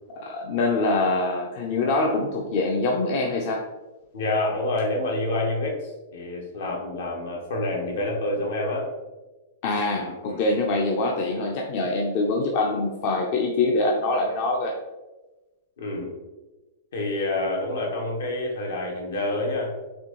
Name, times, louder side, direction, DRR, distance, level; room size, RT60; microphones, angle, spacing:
voice 1, 0.1-3.6 9.6-14.8, left 2 dB, 50° left, 0 dB, 0.5 m, -24 dB
voice 2, 4.1-8.9 10.0-10.4 15.8-16.1 16.9-19.7, left 2 dB, 80° left, -1 dB, 1.1 m, -28 dB
4.2 x 2.7 x 3.0 m, 1.2 s
hypercardioid pair, 135°, 0 cm